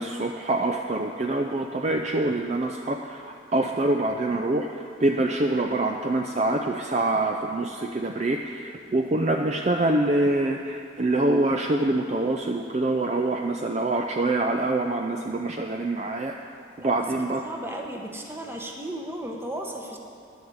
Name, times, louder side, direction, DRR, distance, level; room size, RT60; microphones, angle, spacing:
voice 1, 0.0-3.2 3.5-4.7 5.0-16.3 16.8-17.4, right 2 dB, 35° right, 3 dB, 0.4 m, -25 dB
voice 2, 17.4-20.0, right 1 dB, 10° right, 1 dB, 1.0 m, -35 dB
11.0 x 7.1 x 7.9 m, 2.4 s
head